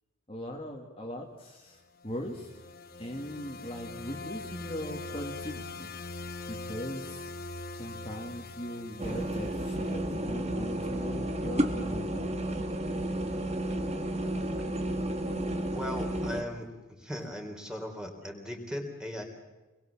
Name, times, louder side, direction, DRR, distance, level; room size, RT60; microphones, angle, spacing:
voice 1, 0.3-2.6 3.0-5.9 6.5-7.3 7.7-12.4, equal, 25° left, 0 dB, 2.2 m, -40 dB
sound 1, 2.0-10.2, left 3 dB, 45° left, 1.7 m, -42 dB
sound 2, 9.0-16.4, right 1 dB, 30° right, 2.1 m, -32 dB
voice 2, 15.7-19.2, left 1 dB, 5° right, 3 dB, 3.6 m, -38 dB
28.0 x 22.0 x 7.4 m, 1.2 s
head